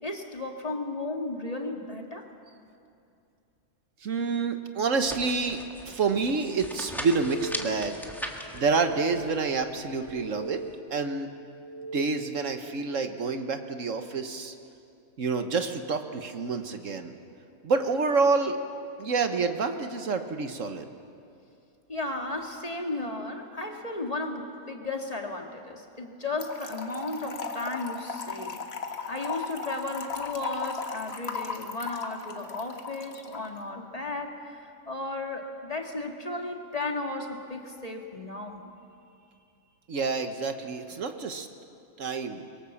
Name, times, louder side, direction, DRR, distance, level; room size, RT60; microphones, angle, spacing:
voice 1, 0.0-2.3 21.9-28.6 29.1-34.6 34.9-38.7, left 2 dB, 25° left, 2 dB, 2.0 m, -34 dB
voice 2, 4.0-8.1 8.5-10.6 10.9-11.3 11.9-14.5 15.2-17.1 17.6-18.6 19.0-20.9 39.9-41.5 42.0-42.5, right 4 dB, 65° right, 7 dB, 1.5 m, -28 dB
sound 1, 5.0-10.8, equal, ahead, 1.7 m, -40 dB
sound 2, 6.9-8.1 8.4-9.6 9.9-11.1 11.5-12.6, right 3 dB, 85° right, 5.4 m, -40 dB
Trickle dribble / Fill (with liquid), 26.4-33.5, left 5 dB, 50° left, 1.6 m, -36 dB
25.0 x 22.5 x 7.2 m, 2.5 s
omnidirectional pair, 1.4 m